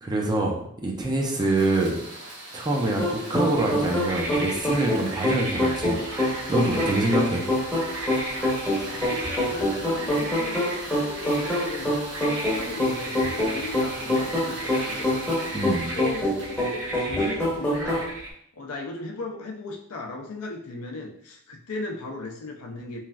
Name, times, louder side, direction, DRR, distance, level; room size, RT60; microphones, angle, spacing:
voice 1, 0.0-2.0 2.5-7.4 15.5-16.0, right 2 dB, 20° right, 0 dB, 0.4 m, -25 dB
sound 1, 1.3-17.5, right 2 dB, 80° right, 1.0 m, -39 dB
sound 2, 3.0-18.1, left 1 dB, 10° left, 0.7 m, -26 dB
sound 3, 3.5-18.3, right 1 dB, 60° right, 1.0 m, -36 dB
voice 2, 8.9-15.3 15.7-18.1 18.6-23.0, left 3 dB, 70° left, 2 dB, 0.5 m, -37 dB
3.1 x 2.4 x 2.3 m, 0.69 s
head